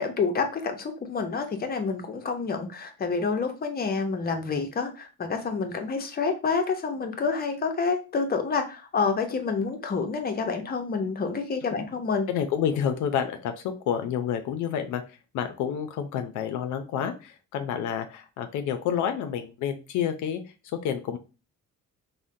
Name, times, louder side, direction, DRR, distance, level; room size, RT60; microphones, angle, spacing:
voice 1, 0.0-12.3, left 4 dB, 30° left, 5 dB, 0.7 m, -28 dB
voice 2, 12.3-13.5 13.9-15.0 15.3-20.4 20.8-21.2, left 8 dB, 80° left, 7 dB, 0.5 m, -29 dB
3.5 x 2.1 x 2.6 m, 0.31 s
cardioid pair, 90°, 30 cm